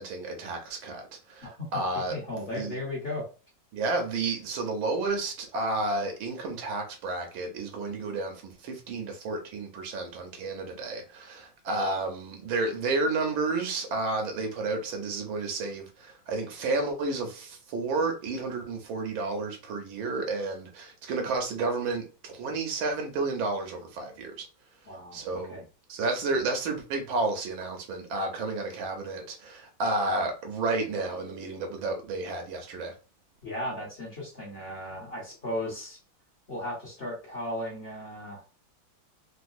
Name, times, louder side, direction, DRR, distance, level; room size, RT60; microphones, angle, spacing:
voice 1, 0.0-2.7 3.7-24.5 25.1-25.6 25.9-32.9, right 3 dB, 85° right, 1.7 m, -31 dB
voice 2, 1.4-3.3 24.9-25.6 33.4-36.0 36.5-38.4, left 1 dB, 35° left, 1.3 m, -36 dB
3.9 x 2.5 x 2.6 m
omnidirectional pair, 2.2 m